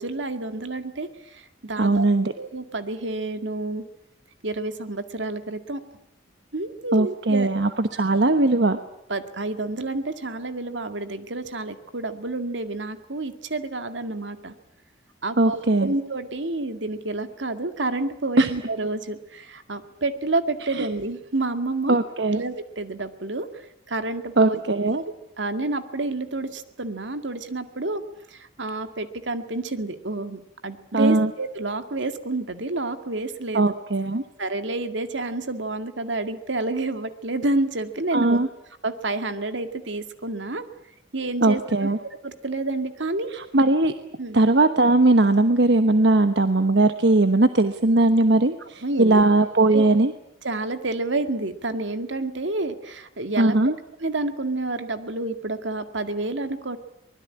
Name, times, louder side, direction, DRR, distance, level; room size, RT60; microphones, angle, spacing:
voice 1, 0.0-2.0 2.4-3.8 4.4-5.8 6.5-7.5 7.9-8.2 9.1-14.5 15.2-22.0 22.3-24.9 25.4-28.0 28.3-33.7 34.4-38.4 38.8-40.7 41.1-43.3 44.2-44.4 48.8-49.2 49.7-49.8 50.4-53.6 54.0-56.8, right 2 dB, 85° right, 9 dB, 2.1 m, -29 dB
voice 2, 1.8-2.3 6.9-8.8 15.4-15.9 18.4-18.5 20.8-20.9 21.9-22.4 24.4-25.0 30.9-31.3 33.5-34.2 38.1-38.5 41.4-42.0 43.3-43.9 44.3-50.1 53.4-53.7, right 2 dB, 65° right, 9 dB, 1.1 m, -19 dB
24.0 x 20.5 x 9.8 m, 0.79 s
head